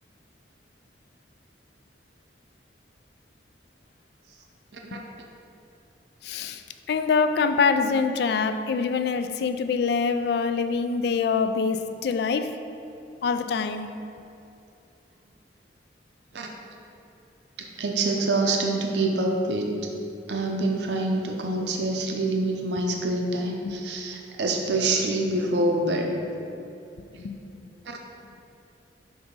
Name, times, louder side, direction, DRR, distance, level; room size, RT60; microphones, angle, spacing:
voice 1, 6.2-6.6 6.9-12.6 13.2-13.9 23.6-23.7 27.2-27.7, left 5 dB, 65° left, 9 dB, 0.3 m, -25 dB
voice 2, 17.6-19.9 20.3-26.2 27.9-28.0, right 2 dB, 75° right, 1 dB, 0.6 m, -26 dB
6.8 x 2.7 x 5.3 m, 2.7 s
head